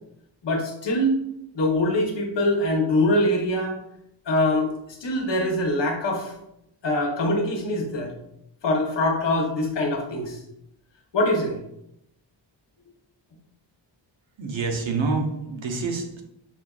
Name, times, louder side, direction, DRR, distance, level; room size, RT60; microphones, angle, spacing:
voice 1, 0.4-1.1 1.5-3.8 4.3-6.3 6.8-8.1 8.6-10.4 11.1-11.6, left 1 dB, 65° left, 0 dB, 1.0 m, -23 dB
voice 2, 14.4-16.2, right 4 dB, 75° right, 3 dB, 0.8 m, -27 dB
5.6 x 2.5 x 2.3 m, 0.79 s
wide cardioid pair, 95°, 46 cm